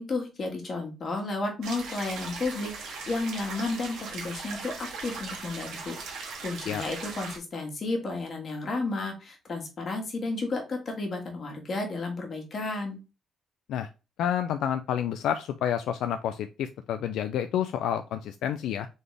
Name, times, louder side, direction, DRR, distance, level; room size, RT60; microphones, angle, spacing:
voice 1, 0.0-13.0, left 3 dB, 45° left, 1 dB, 1.7 m, -32 dB
sound 1, 1.6-7.4, right 4 dB, 85° right, 1.5 m, -39 dB
voice 2, 14.2-18.9, left 9 dB, 85° left, 8 dB, 0.3 m, -29 dB
3.9 x 3.4 x 3.3 m, 0.29 s
cardioid pair, 90°, 0 cm